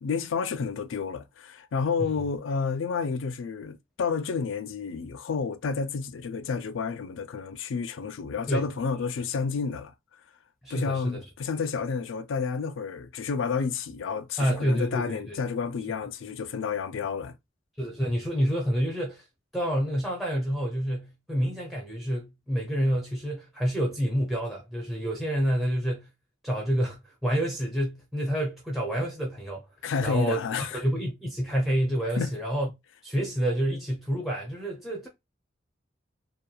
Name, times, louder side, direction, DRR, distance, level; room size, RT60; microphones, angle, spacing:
voice 1, 0.0-9.9 10.7-17.3 29.8-30.8 32.2-32.3, left 5 dB, 90° left, 0.4 m, -30 dB
voice 2, 10.6-11.2 14.4-15.4 17.8-19.2 19.5-26.1 26.4-29.6 30.0-30.4 30.7-32.7 33.0-35.1, equal, ahead, 0.5 m, -28 dB
2.8 x 2.2 x 2.2 m
head